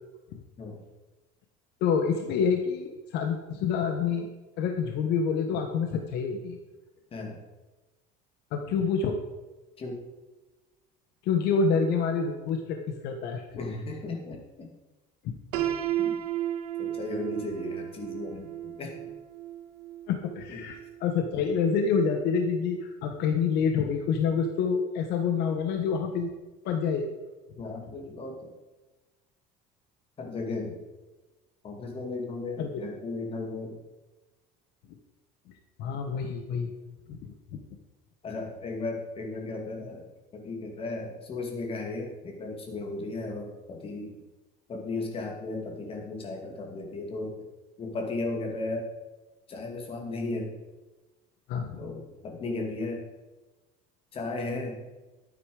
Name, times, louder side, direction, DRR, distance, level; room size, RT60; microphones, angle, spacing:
voice 1, 1.8-4.3 4.6-6.6 8.5-9.2 11.2-12.8 13.0-13.4 15.2-15.4 20.1-26.3 26.6-27.1 32.6-32.7 35.8-36.7 37.1-37.3 51.5-51.8, left 6 dB, 65° left, 5 dB, 1.3 m, -27 dB
voice 2, 13.6-14.7 16.0-16.2 16.8-19.0 20.5-20.6 27.6-28.5 30.2-30.8 31.6-33.8 38.2-40.0 40.3-44.1 44.7-47.4 47.8-48.9 49.5-50.5 51.8-53.0 54.1-54.8, left 2 dB, 30° left, 2 dB, 2.5 m, -35 dB
Piano, 15.5-21.4, right 11 dB, 80° right, 1.6 m, -34 dB
12.0 x 9.1 x 5.0 m, 1.1 s
cardioid pair, 140°, 18 cm